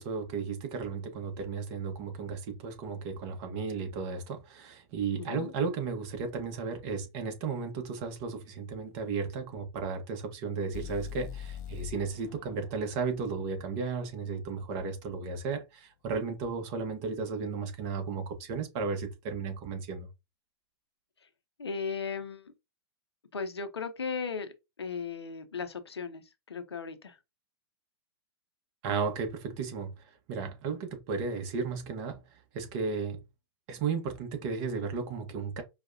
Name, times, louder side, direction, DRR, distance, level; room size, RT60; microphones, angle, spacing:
voice 1, 0.0-20.1 28.8-29.9 30.3-32.2 32.5-33.2 33.7-35.6, right 5 dB, 40° right, 1.2 m, -34 dB
voice 2, 5.2-5.5 21.2-21.3 21.6-22.5 23.3-27.2, left 5 dB, 75° left, 0.8 m, -37 dB
sound 1, 10.7-14.7, left 9 dB, 45° left, 0.5 m, -44 dB
4.9 x 2.4 x 2.6 m
figure-of-eight pair, 105°, 14 cm